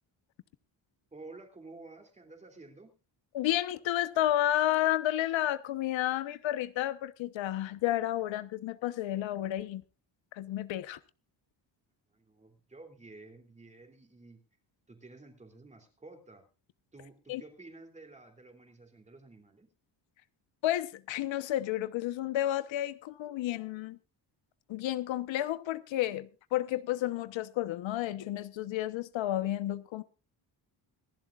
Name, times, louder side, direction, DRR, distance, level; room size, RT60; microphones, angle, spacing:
voice 1, 1.1-2.9 12.1-14.4 14.9-16.5 16.9-19.7, right 3 dB, 15° right, 3.0 m, -52 dB
voice 2, 3.3-9.8 10.3-11.0 17.3-17.4 20.6-24.0 24.7-30.0, left 13 dB, 80° left, 1.1 m, -31 dB
26.0 x 11.5 x 2.5 m
cardioid pair, 180°, 45 cm